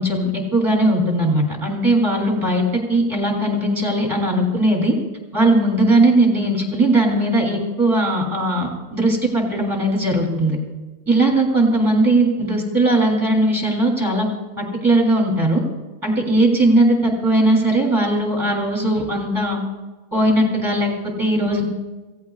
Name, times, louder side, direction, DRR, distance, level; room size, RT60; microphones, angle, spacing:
voice 1, 0.0-2.6 2.9-4.9 5.3-10.6 11.1-14.3 14.6-15.6 16.0-19.6 20.1-21.6, right 1 dB, 15° right, 0 dB, 3.1 m, -18 dB
27.5 x 16.0 x 2.4 m, 1.2 s
omnidirectional pair, 1.4 m